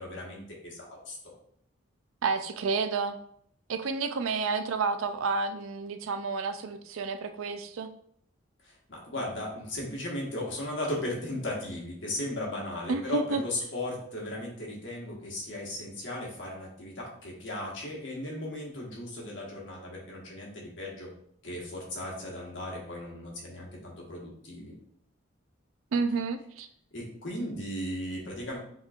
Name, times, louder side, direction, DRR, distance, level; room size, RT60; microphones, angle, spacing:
voice 1, 0.0-1.3 8.6-21.1 21.4-24.7 26.9-28.6, left 1 dB, 70° left, -3 dB, 1.4 m, -36 dB
voice 2, 2.2-3.2 3.7-7.9 12.9-13.4 25.9-26.7, right 4 dB, 90° right, 9 dB, 0.4 m, -30 dB
5.5 x 3.0 x 2.4 m, 0.68 s
head